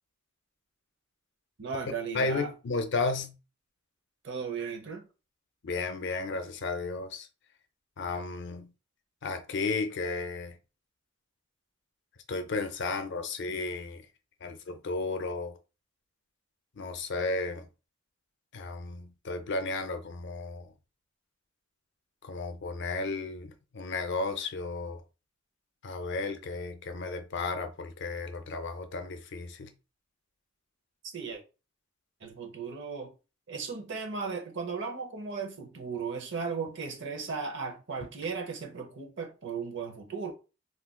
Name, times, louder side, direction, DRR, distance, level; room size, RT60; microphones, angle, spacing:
voice 1, 1.6-2.5 4.2-5.1 31.1-31.4 32.2-33.1 33.5-40.3, right 5 dB, 65° right, 0.7 m, -36 dB
voice 2, 2.1-3.4 5.6-7.3 8.0-8.7 9.2-10.6 12.3-14.1 14.4-15.6 16.8-17.7 18.5-20.7 22.2-25.0 25.8-29.7, left 3 dB, 60° left, 0.5 m, -33 dB
2.4 x 2.2 x 3.6 m
head